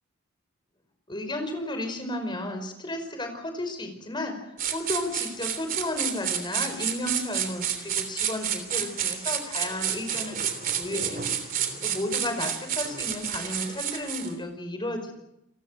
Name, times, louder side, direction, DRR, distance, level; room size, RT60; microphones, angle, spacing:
voice 1, 1.1-10.5 10.8-11.2 11.5-15.1, left 1 dB, 20° left, 6 dB, 5.2 m, -33 dB
sound 1, 4.6-14.3, right 8 dB, 40° right, 3.3 m, -30 dB
29.0 x 21.5 x 6.5 m, 0.83 s
head